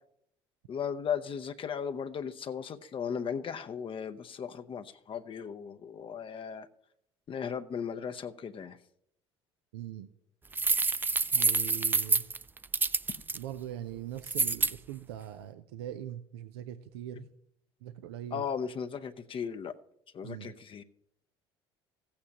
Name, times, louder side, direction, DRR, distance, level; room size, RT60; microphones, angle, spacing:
voice 1, 0.7-6.7 7.3-8.8 18.3-19.7 20.1-20.8, left 7 dB, 40° left, 8 dB, 0.7 m, -36 dB
voice 2, 9.7-10.1 11.3-12.2 13.3-17.2 17.8-18.4 20.2-20.5, right 11 dB, 80° right, 10 dB, 0.5 m, -41 dB
sound 1, 10.5-13.4 14.2-14.7, right 3 dB, 15° right, 0.3 m, -27 dB
15.0 x 8.6 x 2.9 m, 0.72 s
hypercardioid pair, 65°, 13 cm